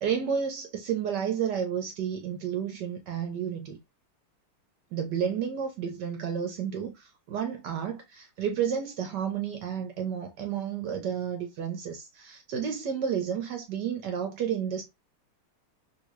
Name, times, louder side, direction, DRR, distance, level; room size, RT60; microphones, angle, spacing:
voice 1, 0.0-3.8 4.9-6.9 7.3-14.8, right 8 dB, 65° right, 1.1 m, -31 dB
3.2 x 2.7 x 3.1 m
omnidirectional pair, 2.4 m